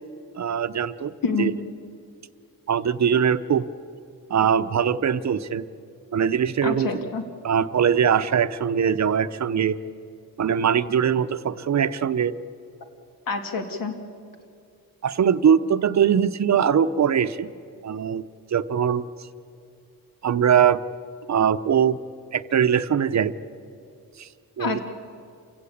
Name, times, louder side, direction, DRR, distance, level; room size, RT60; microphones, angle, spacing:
voice 1, 0.4-1.1 1.4-1.5 2.7-3.7 4.3-5.6 6.1-7.1 7.4-9.8 10.4-12.3 15.0-17.5 17.8-19.0 20.2-20.8 21.3-22.0 22.3-23.3 24.2-24.3 24.6-24.8, right 8 dB, 50° right, 12 dB, 0.7 m, -21 dB
voice 2, 6.6-7.2 13.3-13.9 24.6-24.8, left 4 dB, 70° left, 5 dB, 2.5 m, -27 dB
28.5 x 16.5 x 8.6 m, 2.5 s
wide cardioid pair, 145°, 35 cm